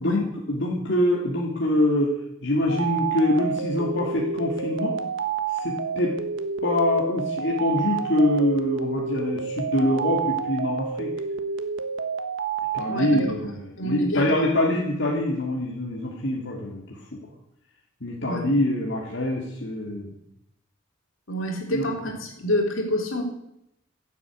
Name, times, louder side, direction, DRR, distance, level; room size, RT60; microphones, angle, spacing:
voice 1, 0.0-2.2 2.4-4.9 5.5-6.2 6.6-11.1 12.7-16.8 17.1-17.2 18.0-20.1 21.7-22.0, left 1 dB, 60° left, -2 dB, 2.4 m, -24 dB
sound 1, 2.7-13.4, right 6 dB, 70° right, 1.4 m, -29 dB
voice 2, 12.9-13.2 13.4-14.3 18.2-18.4 21.3-23.2, left 1 dB, 75° left, 2 dB, 3.8 m, -28 dB
16.0 x 8.5 x 8.3 m, 0.79 s
head